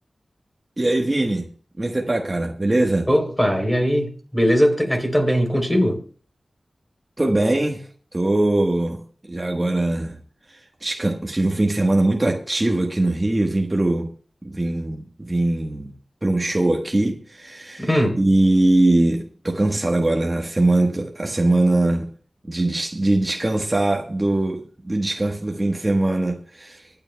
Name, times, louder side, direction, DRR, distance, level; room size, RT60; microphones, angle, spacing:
voice 1, 0.8-1.5 1.8-3.1 7.2-10.2 10.5-14.1 14.4-15.9 16.2-17.9 18.2-22.1 22.5-26.9, right 2 dB, 30° right, 1.2 m, -21 dB
voice 2, 3.1-6.0 17.8-18.2, equal, 10° left, 3.4 m, -20 dB
24.0 x 8.9 x 2.2 m
wide cardioid pair, 55°, 0 cm